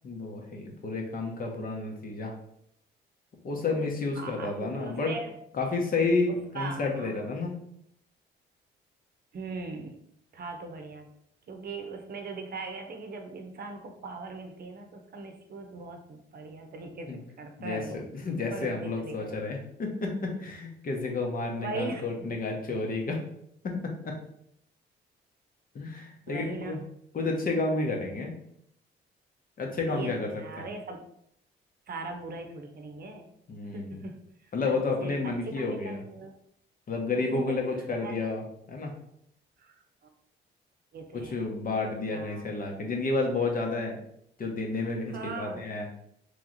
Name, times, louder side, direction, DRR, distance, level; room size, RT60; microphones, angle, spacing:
voice 1, 0.0-2.3 3.4-5.1 5.5-7.6 17.1-17.2 17.6-23.2 23.6-24.1 25.7-26.8 27.1-28.4 29.6-30.7 33.5-34.0 34.5-36.0 36.9-38.9 41.1-44.0 44.4-45.9, left 3 dB, 45° left, 1 dB, 1.0 m, -31 dB
voice 2, 4.1-5.3 6.3-7.1 9.3-9.9 10.3-11.1 11.5-18.0 18.5-19.4 21.6-22.1 26.3-26.8 29.9-31.0 31.9-33.3 33.7-34.2 34.4-36.3 37.3-38.2 39.6-40.1 40.9-41.4 42.1-42.4 45.1-45.6, right 3 dB, 50° right, 4 dB, 0.7 m, -40 dB
3.2 x 3.0 x 3.9 m, 0.72 s
cardioid pair, 90°, 20 cm